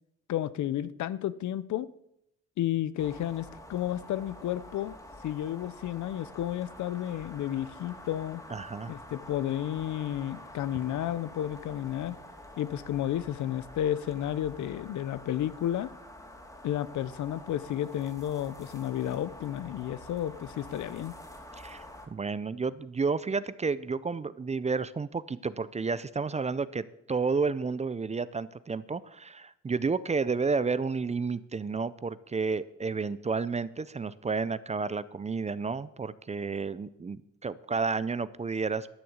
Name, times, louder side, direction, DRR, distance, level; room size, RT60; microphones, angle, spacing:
voice 1, 0.3-1.9 2.6-4.9 5.2-8.4 8.9-12.2 12.6-15.9 16.6-21.1, left 11 dB, 70° left, 0.8 m, -32 dB
sound 1, 3.0-22.1, left 1 dB, 10° left, 2.5 m, -48 dB
voice 2, 8.5-8.9 21.6-38.9, right 4 dB, 20° right, 0.5 m, -31 dB
12.5 x 6.8 x 7.9 m
cardioid pair, 90°, 30 cm